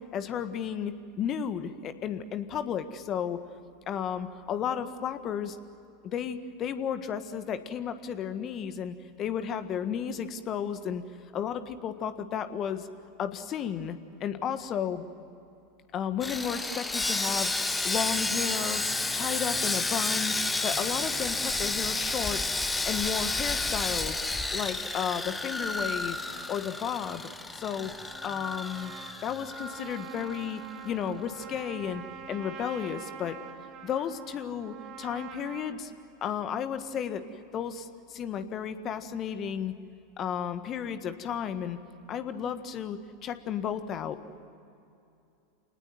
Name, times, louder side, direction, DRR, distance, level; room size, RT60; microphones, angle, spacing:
voice 1, 0.0-3.4 3.9-5.6 6.0-11.0 11.3-12.9 13.2-15.0 15.9-18.8 19.1-20.3 20.6-22.4 22.8-24.2 24.5-26.2 26.5-27.3 27.5-27.9 28.2-28.9 29.2-32.0 32.3-33.4 33.8-35.9 36.2-37.2 37.5-39.7 40.2-41.8 42.1-44.2, left 8 dB, 40° left, 10 dB, 1.6 m, -33 dB
Sawing, 16.2-30.5 30.7-30.9 31.4-31.5, left 2 dB, 10° left, 1.4 m, -31 dB
Trumpet, 27.7-35.8, right 8 dB, 40° right, 2.4 m, -45 dB
28.5 x 19.5 x 9.3 m, 2.6 s
figure-of-eight pair, 85°, 0 cm